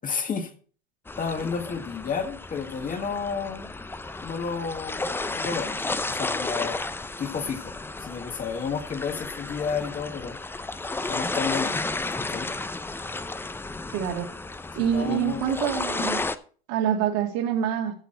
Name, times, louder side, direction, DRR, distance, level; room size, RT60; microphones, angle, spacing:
voice 1, 0.0-0.5 1.2-3.7 4.2-6.8 7.2-7.7 8.0-10.4 11.1-11.8 12.3-12.5 14.8-15.4, left 6 dB, 25° left, 6 dB, 1.7 m, -31 dB
sound 1, 1.1-16.4, left 3 dB, 10° left, 0.6 m, -32 dB
voice 2, 13.9-14.3 14.8-16.2 16.7-17.9, right 9 dB, 60° right, 2 dB, 2.5 m, -26 dB
14.5 x 6.2 x 4.4 m, 0.42 s
hypercardioid pair, 95°, 29 cm